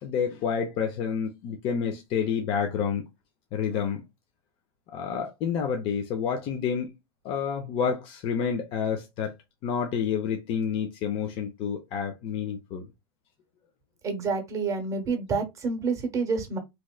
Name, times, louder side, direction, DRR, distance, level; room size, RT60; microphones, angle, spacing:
voice 1, 0.0-3.0 3.5-4.0 4.9-6.9 7.2-9.3 9.6-12.9, left 7 dB, 45° left, 0.6 m, -29 dB
voice 2, 14.0-16.6, right 4 dB, 25° right, 1.0 m, -28 dB
3.1 x 2.9 x 2.2 m
supercardioid pair, 130°, 14 cm